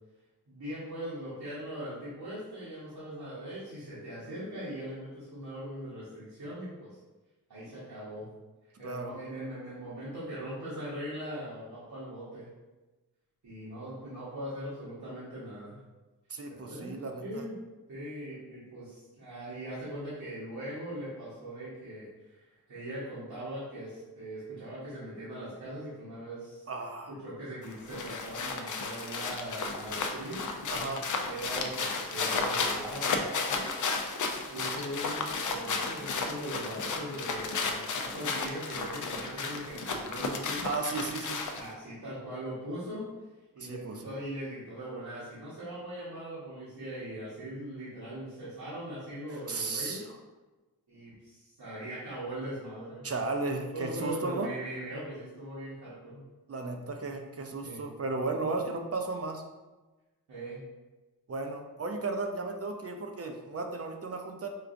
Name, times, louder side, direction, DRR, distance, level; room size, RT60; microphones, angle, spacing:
voice 1, 0.5-7.0 7.5-8.3 8.8-12.5 13.4-15.8 16.6-17.5 17.9-22.1 22.4-26.7 27.1-30.4 31.2-33.7 34.5-40.7 41.5-43.0 43.5-50.0 50.9-53.1 53.7-56.3 57.6-57.8 60.3-60.6, right 1 dB, 70° right, -10 dB, 1.2 m, -40 dB
voice 2, 16.3-17.4 26.7-27.1 30.7-31.1 40.6-41.5 43.6-44.1 49.5-50.2 53.0-54.5 56.5-59.4 61.3-64.5, right 3 dB, 40° right, 4 dB, 0.5 m, -35 dB
sound 1, 27.6-41.7, left 4 dB, 50° left, 0.5 m, -33 dB
4.5 x 2.4 x 2.5 m, 1.2 s
cardioid pair, 45°, 39 cm